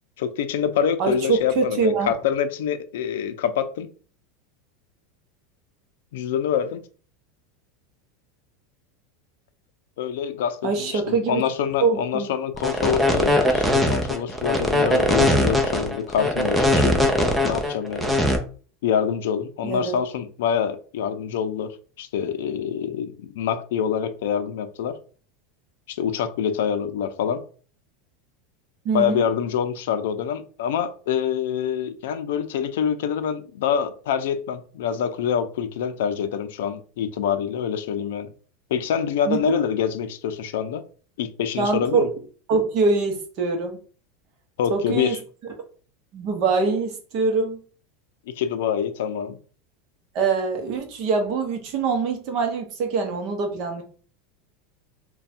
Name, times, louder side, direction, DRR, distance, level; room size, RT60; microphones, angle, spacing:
voice 1, 0.2-3.9 6.1-6.8 10.0-18.1 18.8-25.0 25.9-27.4 28.9-38.3 38.7-40.8 41.2-42.1 44.6-45.2 48.3-49.4, left 8 dB, 75° left, 10 dB, 0.5 m, -26 dB
voice 2, 1.0-2.1 10.6-11.4 11.8-12.3 19.6-20.0 28.8-29.3 39.3-39.6 41.6-42.1 42.5-43.8 44.7-45.2 46.1-47.6 50.1-53.8, right 4 dB, 40° right, 4 dB, 0.8 m, -24 dB
sound 1, 12.5-18.4, left 1 dB, 5° right, 0.5 m, -20 dB
3.4 x 2.3 x 4.2 m, 0.40 s
supercardioid pair, 175°, 0 cm